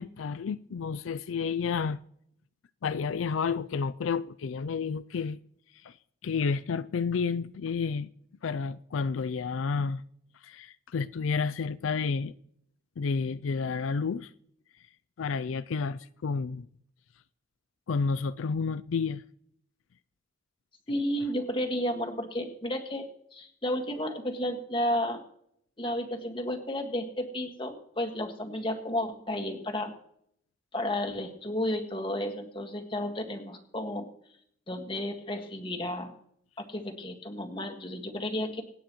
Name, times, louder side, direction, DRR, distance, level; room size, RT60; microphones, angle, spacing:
voice 1, 0.0-2.0 2.8-5.4 5.8-5.9 6.2-8.1 8.4-10.0 10.4-12.3 13.0-14.3 15.2-16.7 17.9-19.2, left 5 dB, 90° left, 0.4 m, -30 dB
voice 2, 20.9-23.1 23.3-25.2 25.8-29.9 30.7-34.1 34.7-36.1 36.6-38.6, left 1 dB, 25° left, 1.8 m, -32 dB
25.5 x 9.1 x 3.1 m
head